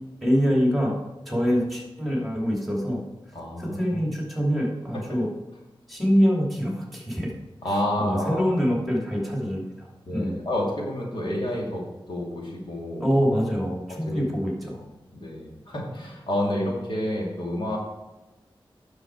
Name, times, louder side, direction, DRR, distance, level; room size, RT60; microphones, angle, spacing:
voice 1, 0.2-1.0 1.3-3.0 3.6-5.3 5.9-7.3 8.0-10.3 13.0-14.8, equal, ahead, -2 dB, 2.9 m, -25 dB
voice 2, 3.3-4.0 7.6-8.5 10.1-13.1 13.9-14.2 14.7-14.8 15.1-17.8, left 1 dB, 65° left, -3 dB, 2.8 m, -29 dB
9.7 x 6.7 x 4.8 m, 1.1 s
wide cardioid pair, 95°, 9 cm